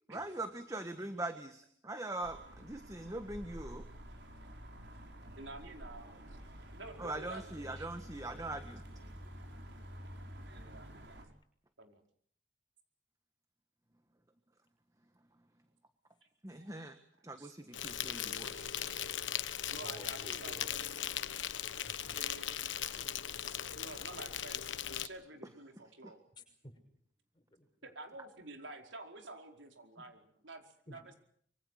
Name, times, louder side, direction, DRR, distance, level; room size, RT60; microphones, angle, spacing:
voice 1, 0.1-3.8 7.0-8.8 16.4-17.0 17.2-18.7, right 2 dB, 15° right, 8 dB, 1.5 m, -42 dB
sound 1, 2.2-11.3, equal, 65° right, 5.3 m, -50 dB
voice 2, 5.3-6.4 6.7-7.9 8.3-8.5 10.5-11.2 11.8-12.0 16.6-16.7 17.4-17.5 19.7-20.9 22.1-22.6 23.5-24.6 24.9-26.2 27.8-31.1, right 2 dB, 85° right, 4 dB, 4.8 m, -50 dB
Insect, 17.7-25.1, left 10 dB, 85° left, 1.2 m, -39 dB
voice 3, 19.7-20.7 21.8-22.2 26.4-26.7 27.3-27.7 30.0-30.1 30.9-31.0, left 1 dB, 25° left, 5 dB, 6.0 m, -53 dB
25.5 x 24.5 x 6.6 m, 0.64 s
head